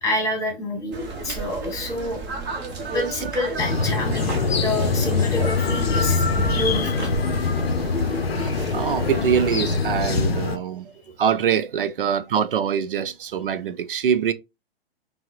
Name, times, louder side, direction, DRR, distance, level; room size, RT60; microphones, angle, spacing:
voice 1, 0.0-1.0 1.2-2.2 2.9-7.1, left 1 dB, 10° left, 1.4 m, -27 dB
sound 1, 0.9-9.8, right 3 dB, 30° right, 1.1 m, -33 dB
sound 2, 3.6-10.6, left 4 dB, 75° left, 0.6 m, -23 dB
voice 2, 8.1-10.9 11.2-14.3, right 8 dB, 60° right, 0.5 m, -24 dB
5.5 x 2.1 x 2.4 m
figure-of-eight pair, 120°, 31 cm